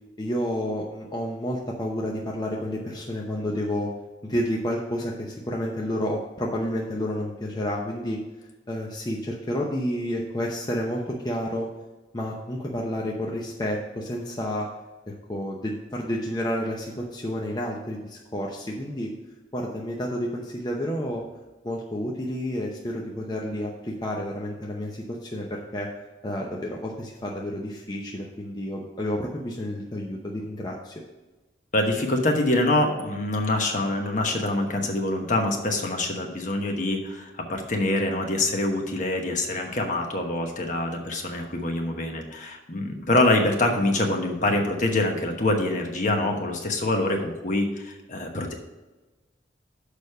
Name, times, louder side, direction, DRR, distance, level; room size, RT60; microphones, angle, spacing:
voice 1, 0.2-3.9 4.2-8.2 8.7-11.7 12.1-14.7 15.3-19.1 19.5-21.2 21.6-25.9 26.2-31.0, equal, 25° left, -2 dB, 0.7 m, -30 dB
voice 2, 31.7-48.5, left 2 dB, 45° left, 3 dB, 1.1 m, -25 dB
6.6 x 5.2 x 6.6 m, 1.1 s
head